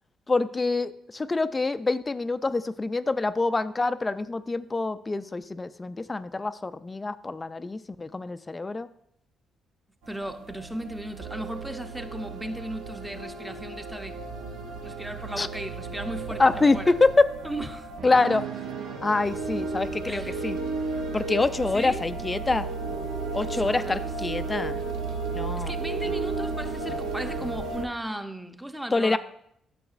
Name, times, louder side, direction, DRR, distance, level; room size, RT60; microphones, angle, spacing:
voice 1, 0.3-8.9 15.4-15.5 16.4-17.3 18.0-18.4 19.0-20.6 21.1-22.7 23.3-24.8 25.3-25.7 28.9-29.2, left 3 dB, 25° left, 13 dB, 0.3 m, -25 dB
sound 1, 10.0-27.9, right 4 dB, 90° right, 0.8 m, -33 dB
voice 2, 10.1-14.2 14.8-16.9 17.4-17.9 20.1-20.5 21.7-22.0 23.4-24.1 25.6-29.2, right 1 dB, 5° right, 7 dB, 0.7 m, -36 dB
9.9 x 6.2 x 2.5 m, 0.72 s
cardioid pair, 90°, 0 cm